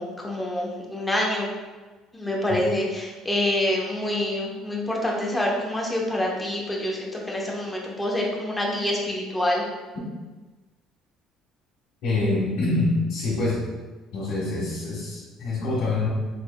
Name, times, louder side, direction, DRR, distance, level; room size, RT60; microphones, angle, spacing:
voice 1, 0.0-1.5 2.1-9.6, left 1 dB, 5° left, -3 dB, 0.8 m, -26 dB
voice 2, 12.0-13.6 14.1-16.1, left 2 dB, 70° left, -9 dB, 1.4 m, -25 dB
5.1 x 3.2 x 2.2 m, 1.2 s
cardioid pair, 130°, 0 cm